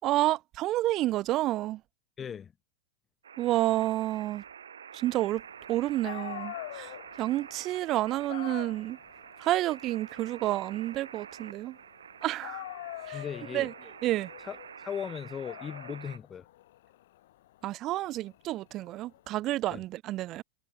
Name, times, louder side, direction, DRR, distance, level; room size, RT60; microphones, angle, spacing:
voice 1, 0.0-1.8 3.4-4.4 4.9-5.4 5.7-9.0 9.4-11.8 12.2-12.7 13.1-13.2 13.5-13.7 14.0-14.3 17.6-20.4, right 15 dB, 35° right, 2.2 m, -30 dB
voice 2, 2.2-2.5 13.1-13.7 14.4-16.5 19.7-19.8, left 7 dB, 20° left, 5.2 m, -38 dB
sound 1, 3.2-16.2, right 8 dB, 70° right, 6.6 m, -48 dB
Dog, 5.7-5.8 6.0-12.1 12.4-19.2, left 15 dB, 55° left, 4.1 m, -45 dB
figure-of-eight pair, 90°, 0 cm